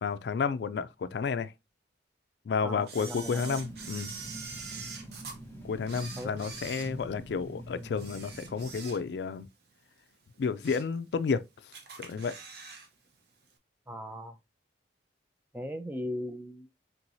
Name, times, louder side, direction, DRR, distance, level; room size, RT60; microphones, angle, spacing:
voice 1, 0.0-1.5 2.5-4.1 5.6-9.5 10.4-11.4 12.0-12.4, left 5 dB, 65° left, 0.3 m, -31 dB
voice 2, 2.6-3.6 5.0-5.1 6.1-6.4 13.9-14.4 15.5-16.7, equal, 10° right, 0.4 m, -38 dB
Camera, 2.9-5.4 5.8-7.5 7.9-9.3 9.7-9.8 10.3-11.0 11.3-11.4 11.7-12.9 13.1-13.2, right 5 dB, 60° right, 0.8 m, -44 dB
sound 1, 3.2-8.8, right 1 dB, 10° left, 0.8 m, -45 dB
4.5 x 3.8 x 2.6 m
head